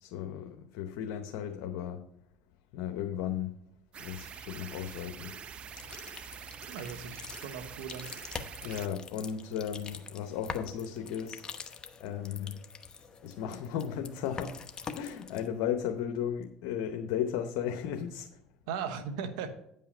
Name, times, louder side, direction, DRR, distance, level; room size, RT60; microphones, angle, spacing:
voice 1, 0.0-2.1 2.7-3.6 4.0-5.4 8.6-11.4 12.0-12.6 13.2-14.6 14.9-18.3, left 9 dB, 75° left, 4 dB, 0.8 m, -35 dB
sound 1, 3.9-8.9, right 7 dB, 45° right, 0.7 m, -45 dB
sound 2, 5.7-15.5, left 5 dB, 30° left, 0.9 m, -45 dB
voice 2, 6.7-8.1 18.7-19.6, right 7 dB, 85° right, 9 dB, 1.1 m, -38 dB
9.7 x 5.5 x 5.5 m, 0.75 s
supercardioid pair, 95°, 3 cm